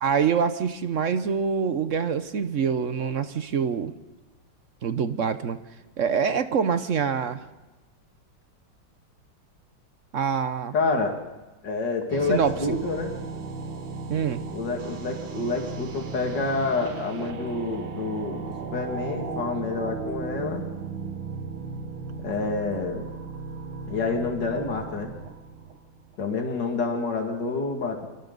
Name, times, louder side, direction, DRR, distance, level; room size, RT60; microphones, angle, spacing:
voice 1, 0.0-3.9 4.8-5.6 6.0-7.4 10.1-10.7 12.3-12.6 14.1-14.4, right 6 dB, 55° right, 11 dB, 1.0 m, -25 dB
voice 2, 10.7-11.2 11.6-13.1 14.5-20.7 22.2-23.1 23.9-25.1 26.2-28.1, left 3 dB, 65° left, 2 dB, 2.9 m, -28 dB
sound 1, 12.1-26.2, right 5 dB, 85° right, 2.3 m, -36 dB
29.5 x 25.0 x 4.0 m, 1.1 s
omnidirectional pair, 2.1 m